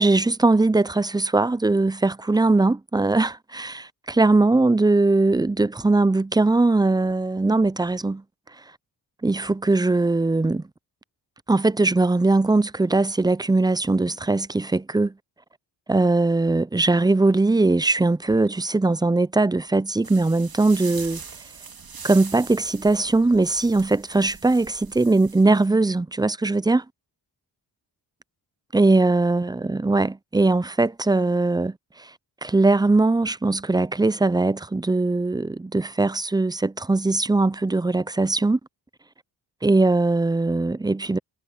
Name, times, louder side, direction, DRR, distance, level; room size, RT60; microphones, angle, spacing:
voice 1, 0.0-8.2 9.2-10.6 11.5-15.1 15.9-21.2 22.0-26.8 28.7-32.1 32.4-38.6 39.6-41.2, right 2 dB, 10° right, 0.4 m, -20 dB
sound 1, 20.0-25.7, right 5 dB, 55° right, 2.7 m, -41 dB
cardioid pair, 65°, 44 cm